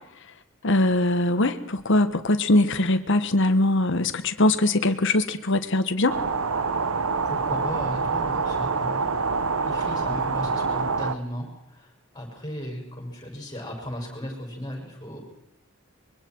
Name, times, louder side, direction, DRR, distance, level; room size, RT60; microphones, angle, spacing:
voice 1, 0.6-6.2, left 2 dB, 65° left, 10 dB, 1.4 m, -22 dB
sound 1, 6.1-11.1, right 4 dB, 80° right, 0.9 m, -26 dB
voice 2, 7.2-9.2 9.6-15.2, equal, 20° left, -1 dB, 6.8 m, -36 dB
24.5 x 23.0 x 4.7 m, 0.79 s
head